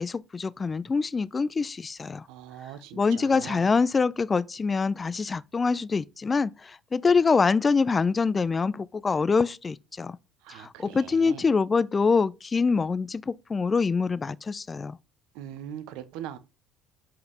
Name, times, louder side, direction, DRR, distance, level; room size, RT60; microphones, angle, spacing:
voice 1, 0.0-2.3 2.9-10.2 10.5-15.0, left 4 dB, 30° left, 0.4 m, -25 dB
voice 2, 2.3-3.8 10.4-11.4 15.3-16.4, right 11 dB, 70° right, 0.9 m, -41 dB
5.8 x 5.2 x 5.5 m
hypercardioid pair, 65°, 0 cm